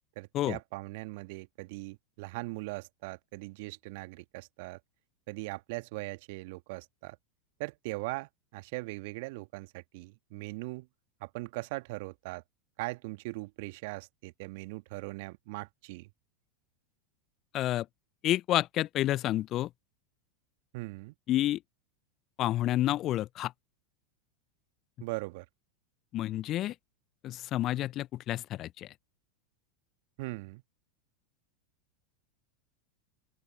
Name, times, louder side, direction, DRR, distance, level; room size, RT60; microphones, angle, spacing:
voice 1, 0.2-4.8 5.3-7.2 7.6-10.9 11.2-12.4 12.8-16.1 20.7-21.1 25.0-25.5 30.2-30.6, right 24 dB, 55° right, 1.8 m, -40 dB
voice 2, 17.5-17.9 18.2-19.7 21.3-21.6 22.4-23.5 26.1-26.7 27.2-28.9, left 14 dB, 40° left, 1.0 m, -29 dB
open air
figure-of-eight pair, 85°, 0 cm